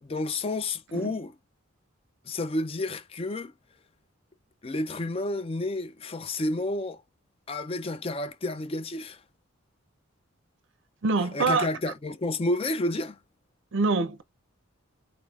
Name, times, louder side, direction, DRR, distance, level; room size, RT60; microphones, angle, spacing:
voice 1, 0.0-1.4 2.2-3.5 4.6-7.0 7.5-9.2 11.3-13.2, left 2 dB, 25° left, 0.4 m, -30 dB
voice 2, 11.0-11.7 13.7-14.2, right 3 dB, 60° right, 0.5 m, -25 dB
4.0 x 3.3 x 2.4 m
head